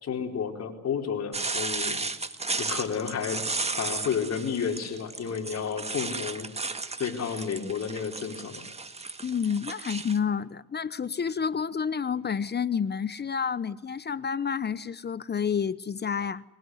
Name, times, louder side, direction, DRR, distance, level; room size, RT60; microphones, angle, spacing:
voice 1, 0.0-2.0 2.5-3.4 3.8-6.5 7.0-8.7, left 7 dB, 55° left, 4.8 m, -31 dB
sound 1, 1.3-10.2, right 3 dB, 20° right, 1.8 m, -34 dB
voice 2, 9.2-16.4, left 6 dB, 35° left, 0.9 m, -29 dB
22.5 x 21.5 x 9.6 m
cardioid pair, 90°, 30 cm